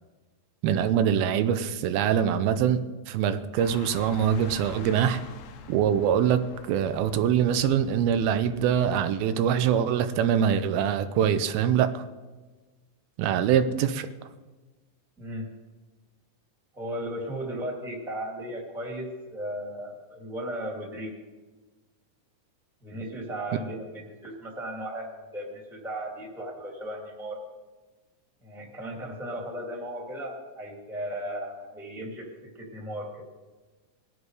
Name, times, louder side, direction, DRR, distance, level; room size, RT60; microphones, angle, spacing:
voice 1, 0.6-5.2 5.7-12.0 13.2-14.1, right 8 dB, 90° right, 10 dB, 2.6 m, -24 dB
sound 1, 3.6-9.0, left 7 dB, 75° left, 1.8 m, -45 dB
voice 2, 16.7-21.1 22.8-27.4 28.4-32.3 32.5-33.2, right 1 dB, ahead, 0 dB, 1.6 m, -36 dB
20.5 x 7.7 x 4.8 m, 1.3 s
omnidirectional pair, 4.2 m